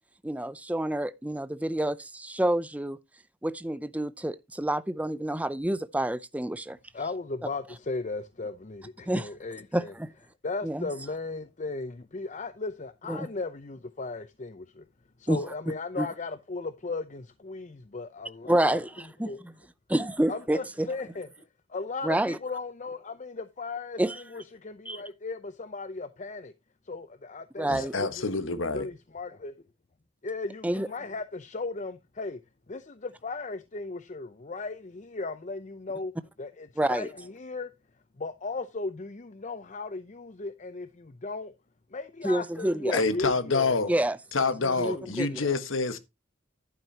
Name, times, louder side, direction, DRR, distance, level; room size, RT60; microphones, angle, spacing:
voice 1, 0.2-3.0 3.4-6.8 9.1-9.3 9.7-10.1 10.6-10.9 13.1-13.3 15.3-15.4 16.0-16.1 18.5-18.9 19.2-19.3 19.9-20.9 22.0-22.4 24.0-24.2 24.9-25.0 27.6-27.9 30.6-30.9 36.8-37.1 42.2-43.0 43.9-44.2 44.8-45.4, right 1 dB, 5° right, 0.5 m, -28 dB
voice 2, 6.9-9.9 10.4-14.9 15.2-18.8 19.3-19.4 20.3-21.3 21.7-26.5 26.8-28.3 28.7-29.5 30.2-32.4 32.7-36.1 36.4-37.7 38.2-41.5 41.9-44.1 44.4-45.6, left 3 dB, 35° left, 0.6 m, -36 dB
voice 3, 27.7-28.9 42.9-43.9 44.3-46.0, left 3 dB, 75° left, 1.5 m, -27 dB
11.0 x 9.2 x 2.9 m
head